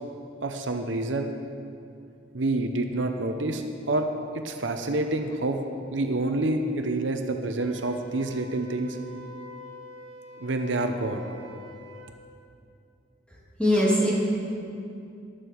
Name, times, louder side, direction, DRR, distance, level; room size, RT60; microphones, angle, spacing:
voice 1, 0.4-1.3 2.3-4.1 4.3-5.6 5.9-9.0 10.4-11.3, right 2 dB, 80° right, 5 dB, 0.9 m, -28 dB
Wind instrument woodwind instrument, 7.6-12.1, left 2 dB, 20° left, 3.2 m, -46 dB
voice 2, 13.3-14.1, equal, 5° left, -6 dB, 2.8 m, -23 dB
15.0 x 11.0 x 4.7 m, 2.6 s
head